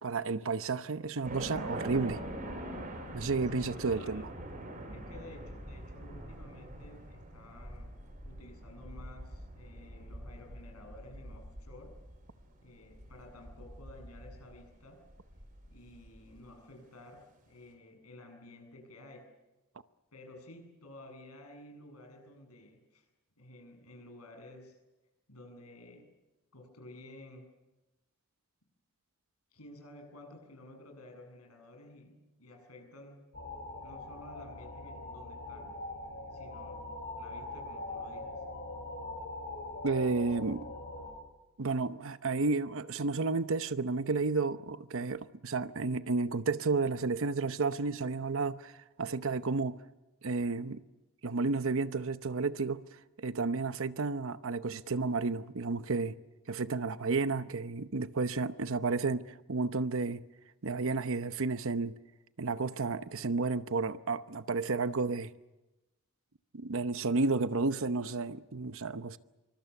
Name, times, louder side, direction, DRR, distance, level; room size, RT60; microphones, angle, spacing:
voice 1, 0.0-2.2 3.1-4.3 39.8-40.7 41.6-49.8 50.2-50.8 51.2-52.8 53.2-56.2 56.5-60.2 60.6-61.9 62.4-65.3 66.5-69.2, right 3 dB, 65° right, 0.9 m, -32 dB
sound 1, 1.2-16.4, right 1 dB, 40° right, 8.0 m, -44 dB
voice 2, 3.5-4.3 4.9-8.0 8.2-12.0 12.6-15.0 15.7-19.3 20.1-23.1 23.4-24.8 25.3-26.1 26.5-27.5 29.5-33.3 33.8-35.8 36.3-38.4, left 1 dB, 85° left, 7.9 m, -52 dB
sound 2, 33.3-41.1, left 2 dB, 60° left, 7.6 m, -42 dB
26.5 x 24.5 x 7.1 m
head